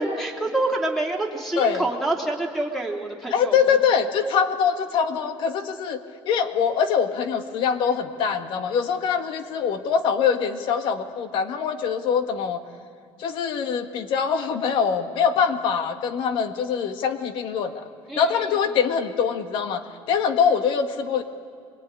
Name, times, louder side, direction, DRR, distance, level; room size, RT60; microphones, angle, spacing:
voice 1, 0.0-3.6 4.2-4.3 18.1-18.6, right 2 dB, 5° left, 1 dB, 3.0 m, -27 dB
voice 2, 3.3-6.0 6.2-12.6 13.2-17.8 18.2-19.8 20.1-21.2, left 7 dB, 60° left, 7 dB, 1.7 m, -23 dB
25.0 x 22.0 x 9.8 m, 2.1 s
cardioid pair, 155°, 9 cm